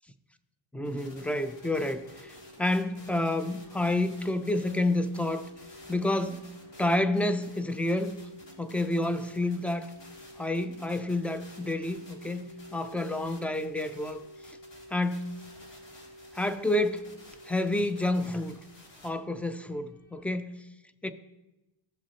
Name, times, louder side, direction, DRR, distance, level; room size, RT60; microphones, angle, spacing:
voice 1, 0.7-2.3 2.6-5.5 5.9-6.5 6.8-8.2 8.6-9.9 10.4-14.2 14.9-15.4 16.3-17.1 17.5-18.5 19.0-20.6 21.0-21.1, left 1 dB, 5° left, 0.4 m, -29 dB
sound 1, 0.8-20.2, equal, 75° left, 2.2 m, -51 dB
sound 2, 0.8-19.1, left 2 dB, 60° left, 2.7 m, -54 dB
15.5 x 6.1 x 2.9 m
cardioid pair, 85°, 50 cm